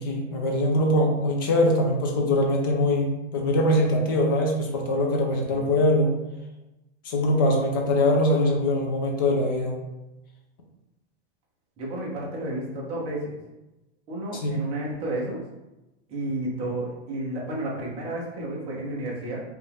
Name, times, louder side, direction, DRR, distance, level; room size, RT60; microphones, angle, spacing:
voice 1, 0.0-6.1 7.0-9.8 14.4-14.6, left 1 dB, 20° left, 0 dB, 0.3 m, -22 dB
voice 2, 5.4-5.7 11.8-13.3 14.1-15.4 16.1-19.4, right 1 dB, 20° right, -4 dB, 0.9 m, -31 dB
5.1 x 2.5 x 3.5 m, 1.0 s
supercardioid pair, 175°, 34 cm